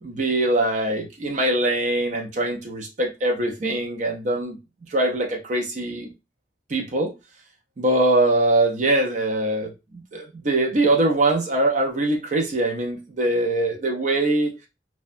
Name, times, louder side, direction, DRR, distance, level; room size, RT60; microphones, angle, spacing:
voice 1, 0.0-4.6 4.9-6.1 6.7-7.1 7.8-14.5, right 2 dB, 40° right, 2 dB, 0.5 m, -22 dB
2.6 x 2.2 x 2.4 m, 0.26 s
head